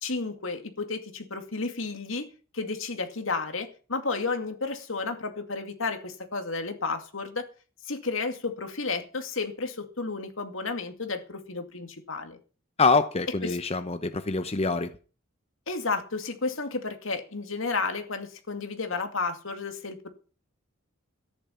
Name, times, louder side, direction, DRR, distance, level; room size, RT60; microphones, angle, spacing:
voice 1, 0.0-2.3 2.5-7.5 7.8-12.4 13.4-13.6 15.7-20.1, left 3 dB, 80° left, 2.3 m, -32 dB
voice 2, 12.8-14.9, left 4 dB, 30° left, 0.8 m, -25 dB
13.5 x 10.5 x 5.7 m
head